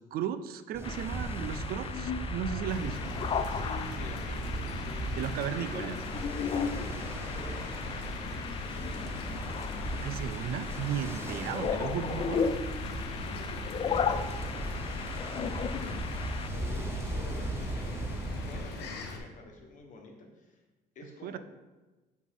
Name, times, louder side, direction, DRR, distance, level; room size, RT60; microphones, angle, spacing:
voice 1, 0.1-3.0 5.2-6.0 10.0-12.5 21.2-21.4, right 9 dB, 65° right, 12 dB, 0.4 m, -35 dB
Ocean, 0.7-18.7, right 1 dB, 15° right, 0.7 m, -38 dB
sound 1, 0.8-16.5, left 6 dB, 30° left, 0.4 m, -36 dB
voice 2, 2.4-5.8 6.2-9.4 12.9-20.6 20.9-21.4, left 3 dB, 50° left, 2 dB, 1.2 m, -49 dB
sound 2, 2.7-19.2, left 4 dB, 75° left, 0.9 m, -42 dB
7.0 x 4.1 x 3.6 m, 1.2 s
cardioid pair, 110°, 17 cm